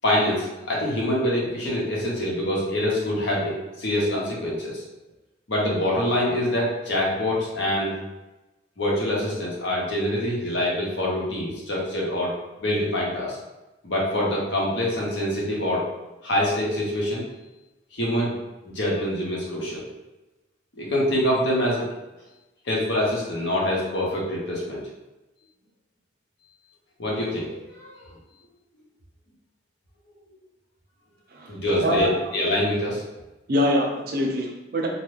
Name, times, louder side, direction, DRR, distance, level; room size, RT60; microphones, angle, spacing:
voice 1, 0.0-4.8 5.5-7.9 8.8-12.3 12.6-13.4 13.8-15.8 16.2-17.2 17.9-18.3 18.7-19.8 20.8-21.9 22.6-24.8 27.0-28.0 31.5-33.0, left 1 dB, 75° left, -4 dB, 0.9 m, -25 dB
voice 2, 31.8-32.1 33.5-34.9, equal, 55° right, 1 dB, 0.5 m, -23 dB
2.6 x 2.3 x 3.2 m, 1.0 s
head